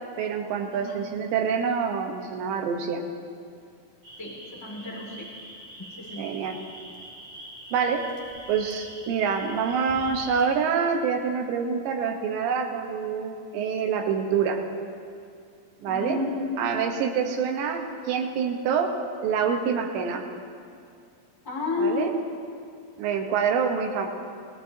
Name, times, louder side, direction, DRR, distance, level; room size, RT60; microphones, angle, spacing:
voice 1, 0.2-3.0 6.2-6.6 7.7-8.1 8.5-14.6 15.8-16.2 16.6-19.0 19.2-20.3 21.8-22.1 23.0-24.1, right 6 dB, 85° right, 3 dB, 3.4 m, -26 dB
voice 2, 0.7-1.0 4.2-5.3 6.0-6.2 15.9-16.6 21.4-22.1, left 3 dB, 10° left, -3 dB, 1.1 m, -31 dB
sound 1, 4.0-10.5, right 1 dB, 35° right, 0.7 m, -44 dB
26.0 x 18.0 x 2.8 m, 2.3 s
omnidirectional pair, 5.0 m